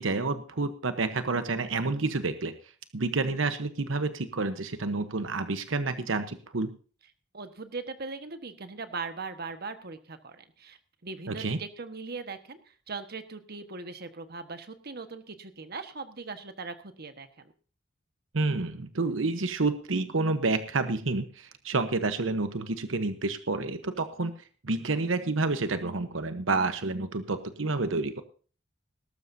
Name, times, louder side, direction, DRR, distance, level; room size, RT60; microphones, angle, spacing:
voice 1, 0.0-2.5 2.9-6.7 11.3-11.6 18.3-24.3 24.6-28.2, right 3 dB, 85° right, 10 dB, 1.0 m, -29 dB
voice 2, 7.3-17.5, right 4 dB, 55° right, 9 dB, 1.4 m, -40 dB
19.5 x 12.5 x 2.7 m, 0.41 s
head